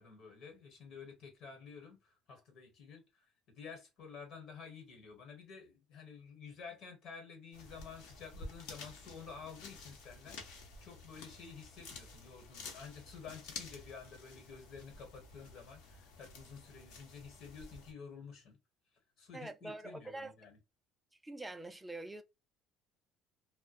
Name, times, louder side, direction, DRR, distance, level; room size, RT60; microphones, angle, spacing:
voice 1, 0.0-18.6 18.9-20.6, left 6 dB, 55° left, 1.0 m, -51 dB
sound 1, 7.5-17.9, left 3 dB, 85° left, 0.8 m, -51 dB
voice 2, 19.3-20.3 21.2-22.2, right 2 dB, 5° right, 0.3 m, -45 dB
2.3 x 2.0 x 2.7 m
cardioid pair, 150°, 0 cm